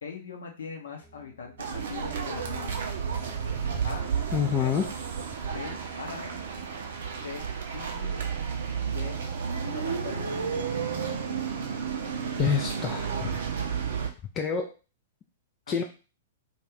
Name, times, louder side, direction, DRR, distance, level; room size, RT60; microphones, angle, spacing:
voice 1, 0.0-2.9 3.8-4.7 5.5-6.4 7.2-7.4 7.7-8.1 8.8-9.2 9.6-10.4 15.7-15.8, left 6 dB, 60° left, 2 dB, 0.7 m, -41 dB
sound 1, 1.0-7.3, right 4 dB, 10° left, 0.8 m, -47 dB
sound 2, 1.6-14.1, right 6 dB, 55° right, 0.5 m, -32 dB
voice 2, 4.3-4.9 12.4-13.3 14.4-14.7 15.7-15.8, left 7 dB, 25° left, 2 dB, 0.3 m, -27 dB
2.4 x 2.3 x 3.3 m, 0.33 s
figure-of-eight pair, 105°, 0 cm